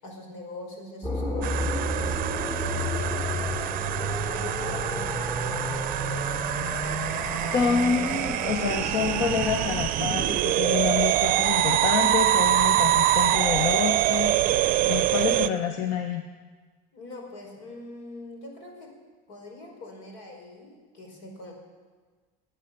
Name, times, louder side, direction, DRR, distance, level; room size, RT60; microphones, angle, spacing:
voice 1, 0.0-6.5 16.9-18.9 19.3-21.5, left 2 dB, 85° left, 2 dB, 4.9 m, -43 dB
sound 1, 1.0-9.8, left 1 dB, 25° left, 3.5 m, -31 dB
sound 2, 1.4-15.5, right 13 dB, 45° right, 0.6 m, -25 dB
voice 2, 7.5-14.4 14.8-16.2, left 6 dB, 55° left, 6 dB, 1.0 m, -27 dB
21.5 x 9.1 x 6.8 m, 1.4 s
cardioid pair, 150°, 20 cm